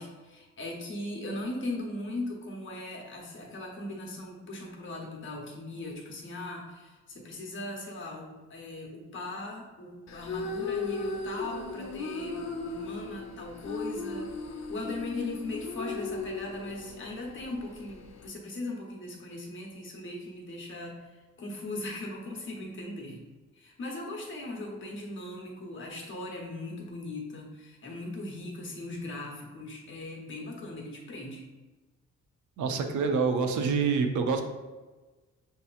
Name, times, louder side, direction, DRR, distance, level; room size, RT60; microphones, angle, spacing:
voice 1, 0.0-14.3 14.7-21.1 21.4-23.2 23.5-31.5, left 2 dB, 40° left, -1 dB, 0.9 m, -39 dB
sound 1, 10.1-18.3, left 4 dB, 65° left, 0.6 m, -37 dB
voice 2, 32.6-34.4, right 5 dB, 80° right, 6 dB, 0.6 m, -26 dB
6.6 x 2.8 x 2.4 m, 1.2 s
wide cardioid pair, 165°, 29 cm